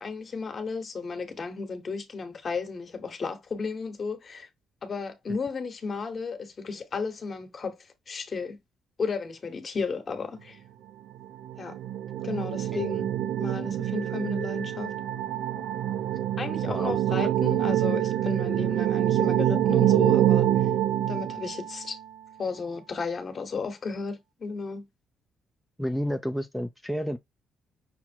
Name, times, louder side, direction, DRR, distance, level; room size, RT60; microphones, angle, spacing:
voice 1, 0.0-4.5 4.8-7.8 8.1-8.6 9.0-10.6 11.6-11.8 12.2-13.1 13.4-15.0 16.4-20.5 21.1-22.0 22.4-24.9, left 4 dB, 40° left, 1.1 m, -34 dB
sound 1, 11.2-22.0, right 12 dB, 80° right, 0.5 m, -26 dB
voice 2, 16.7-17.0 17.2-17.3 25.8-27.2, equal, ahead, 0.5 m, -30 dB
6.0 x 2.0 x 4.3 m
cardioid pair, 90°, 0 cm